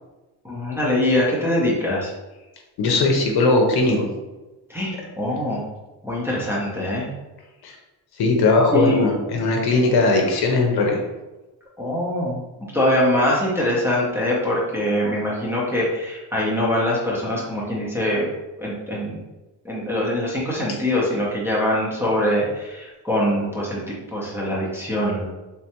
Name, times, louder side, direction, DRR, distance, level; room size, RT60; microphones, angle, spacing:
voice 1, 0.4-2.1 4.7-5.7 6.0-7.1 8.7-9.0 11.8-18.3 18.6-19.2 19.6-25.3, left 1 dB, 5° right, -7 dB, 0.7 m, -23 dB
voice 2, 2.8-4.1 7.6-7.8 8.2-11.0, left 3 dB, 65° left, 1 dB, 0.8 m, -19 dB
3.3 x 3.3 x 2.9 m, 1.1 s
cardioid pair, 165°, 42 cm